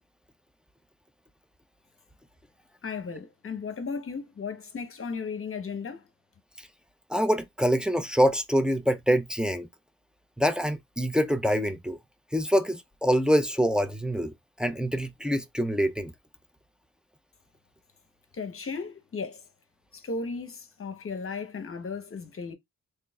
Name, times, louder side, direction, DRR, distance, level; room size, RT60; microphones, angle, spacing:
voice 1, 2.8-6.0 18.3-19.5 19.9-22.5, left 4 dB, 35° left, 1.0 m, -35 dB
voice 2, 7.1-9.7 10.4-12.0 12.3-16.1, equal, ahead, 0.5 m, -25 dB
3.8 x 3.2 x 2.3 m
cardioid pair, 90°, 36 cm